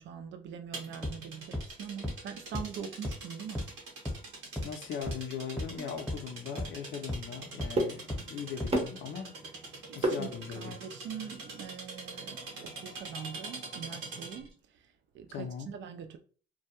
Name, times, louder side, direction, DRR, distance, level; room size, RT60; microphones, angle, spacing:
voice 1, 0.0-3.7 9.9-16.2, right 7 dB, 65° right, 0.4 m, -43 dB
sound 1, 0.7-14.5, right 3 dB, 85° right, 0.9 m, -45 dB
sound 2, 1.0-1.1 1.5-1.6 2.0-2.1 2.5-2.6 3.0-3.1 3.5-3.6 4.1-4.2 4.6-4.7 5.1-5.2 5.6-5.7 6.1-6.2 6.6-6.7 7.1-7.2 7.6-7.7 8.1-8.2 8.6-8.7, left 1 dB, 5° left, 0.9 m, -33 dB
voice 2, 4.6-9.4 9.9-10.8 15.3-15.7, left 7 dB, 75° left, 0.5 m, -39 dB
sound 3, 5.7-10.8, right 1 dB, 30° right, 0.7 m, -36 dB
2.3 x 2.1 x 2.8 m
cardioid pair, 90°, 20 cm